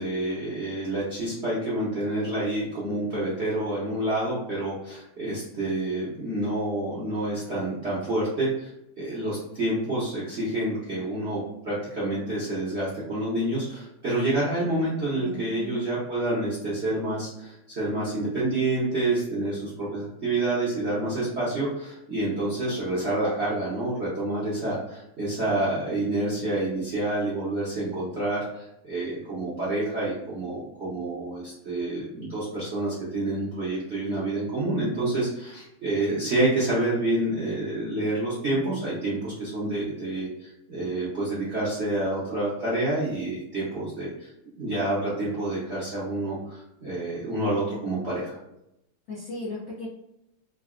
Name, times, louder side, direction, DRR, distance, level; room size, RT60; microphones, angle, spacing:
voice 1, 0.0-44.3 44.6-48.4, right 2 dB, 60° right, -9 dB, 0.7 m, -28 dB
voice 2, 15.2-15.8 49.1-49.9, left 2 dB, 85° left, -6 dB, 0.7 m, -36 dB
3.8 x 2.1 x 2.4 m, 0.84 s
omnidirectional pair, 2.3 m